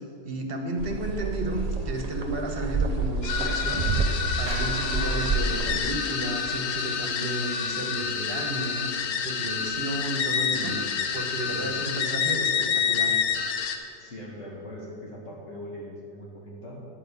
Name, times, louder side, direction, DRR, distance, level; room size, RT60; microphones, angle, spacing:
voice 1, 0.2-8.9 9.2-10.8 11.1-13.2, right 1 dB, 35° right, 2 dB, 1.3 m, -33 dB
sound 1, 0.8-5.8, right 4 dB, 80° right, 0.3 m, -29 dB
sound 2, 3.2-13.8, left 7 dB, 85° left, 1.4 m, -28 dB
sound 3, 4.5-8.8, right 4 dB, 55° right, 1.0 m, -44 dB
voice 2, 10.5-10.9 11.5-11.8 14.0-16.9, equal, 50° left, -4 dB, 2.2 m, -40 dB
11.0 x 5.6 x 8.3 m, 2.5 s
omnidirectional pair, 1.8 m